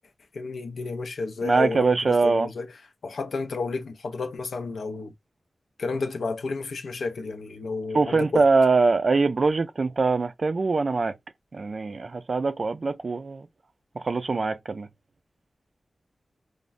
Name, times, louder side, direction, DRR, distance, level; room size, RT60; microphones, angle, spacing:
voice 1, 0.3-2.7 3.0-5.1 5.8-8.4, left 3 dB, 90° left, 0.4 m, -31 dB
voice 2, 1.4-2.5 7.9-11.2 11.5-13.5 13.9-14.9, right 4 dB, 55° right, 0.3 m, -23 dB
3.1 x 2.1 x 2.5 m
wide cardioid pair, 80°, 0 cm